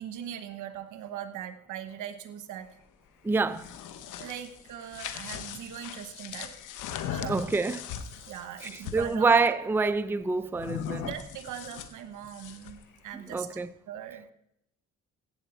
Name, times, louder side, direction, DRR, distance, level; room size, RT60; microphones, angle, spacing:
voice 1, 0.0-2.7 4.2-6.5 7.1-7.5 8.3-9.3 10.9-13.5 13.9-14.3, right 10 dB, 85° right, 1.2 m, -40 dB
voice 2, 3.2-3.6 7.3-7.8 8.6-11.1 13.3-13.7, right 4 dB, 5° right, 0.4 m, -26 dB
sound 1, 3.5-9.1 10.6-12.8, left 8 dB, 85° left, 1.0 m, -39 dB
15.0 x 8.1 x 4.3 m
cardioid pair, 90°, 30 cm